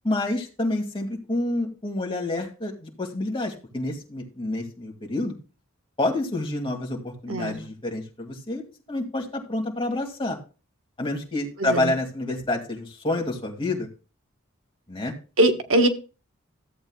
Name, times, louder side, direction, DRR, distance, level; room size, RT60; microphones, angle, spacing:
voice 1, 0.0-5.3 6.0-8.6 8.9-10.4 11.0-13.9 14.9-15.1, left 2 dB, 25° left, 1 dB, 2.0 m, -28 dB
voice 2, 7.3-7.6 11.6-11.9 15.4-15.9, right 1 dB, 75° right, 5 dB, 1.2 m, -21 dB
14.5 x 8.0 x 2.2 m, 0.34 s
head